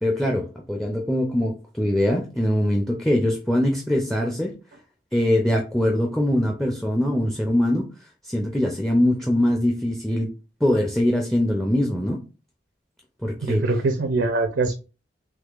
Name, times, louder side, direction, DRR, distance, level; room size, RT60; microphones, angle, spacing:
voice 1, 0.0-4.5 5.1-7.9 8.2-10.3 10.6-12.2 13.2-13.6, left 1 dB, ahead, 0.4 m, -22 dB
voice 2, 13.4-14.7, right 3 dB, 70° right, 0.5 m, -23 dB
3.6 x 3.1 x 2.3 m
head